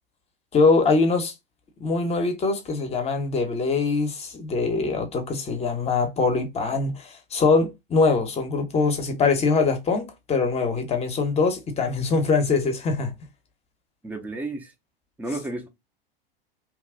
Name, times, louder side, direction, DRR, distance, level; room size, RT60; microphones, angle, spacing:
voice 1, 0.5-1.3 1.8-13.1, left 4 dB, 20° left, 0.8 m, -23 dB
voice 2, 14.0-14.7 15.2-15.7, right 2 dB, 5° right, 0.6 m, -32 dB
2.9 x 2.3 x 3.6 m
figure-of-eight pair, 90°, 30 cm